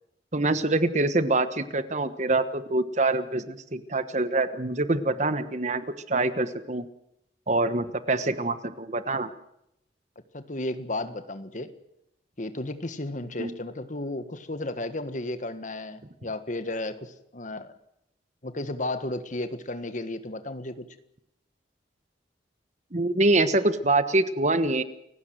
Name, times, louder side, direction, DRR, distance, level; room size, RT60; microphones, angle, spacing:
voice 1, 0.3-6.8 7.5-9.3 13.4-13.5 22.9-24.8, right 2 dB, 40° right, 12 dB, 1.2 m, -25 dB
voice 2, 10.3-11.7 12.4-17.7 18.4-20.9, left 2 dB, 45° left, 11 dB, 1.6 m, -33 dB
29.5 x 16.5 x 7.9 m, 0.80 s
head